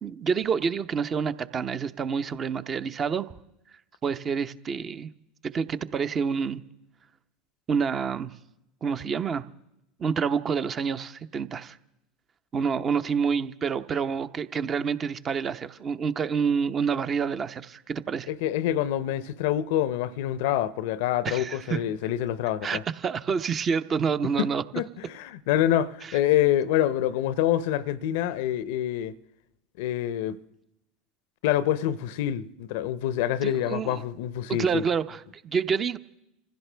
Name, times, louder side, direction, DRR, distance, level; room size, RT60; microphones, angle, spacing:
voice 1, 0.0-3.3 4.0-5.1 5.4-6.6 7.7-8.3 8.8-9.4 10.0-11.8 12.5-18.3 21.2-21.8 22.6-24.6 26.0-26.2 33.4-34.0 34.5-36.0, right 6 dB, 35° right, 0.8 m, -28 dB
voice 2, 18.3-22.8 24.4-24.5 24.7-29.1 29.8-30.4 31.4-34.8, left 12 dB, 65° left, 0.7 m, -26 dB
26.5 x 15.5 x 3.4 m
hypercardioid pair, 80°, 0 cm